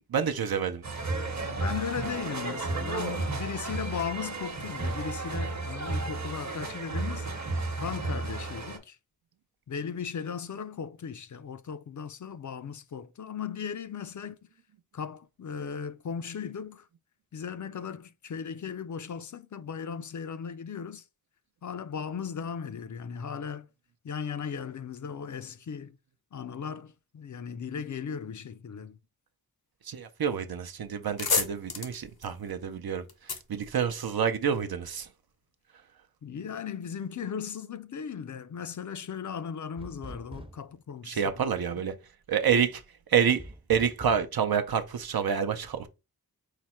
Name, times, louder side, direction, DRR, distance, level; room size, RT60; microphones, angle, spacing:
voice 1, 0.1-0.8 29.9-33.0 33.5-35.1 41.1-41.9 42.3-42.8 43.1-43.4 43.7-45.9, right 7 dB, 75° right, 0.6 m, -28 dB
sound 1, 0.8-8.8, right 3 dB, 50° right, 0.9 m, -33 dB
voice 2, 1.4-7.3 7.8-9.0 9.7-14.4 14.9-16.9 17.3-21.0 21.6-23.7 24.0-26.0 26.3-29.0 36.2-41.9, left 7 dB, 55° left, 0.4 m, -37 dB
sound 2, 30.4-30.6 30.9-34.5, left 5 dB, 75° left, 0.9 m, -33 dB
sound 3, 39.8-40.8 43.4-44.3, right 1 dB, 15° right, 0.5 m, -44 dB
4.8 x 2.1 x 4.2 m
wide cardioid pair, 60°, 37 cm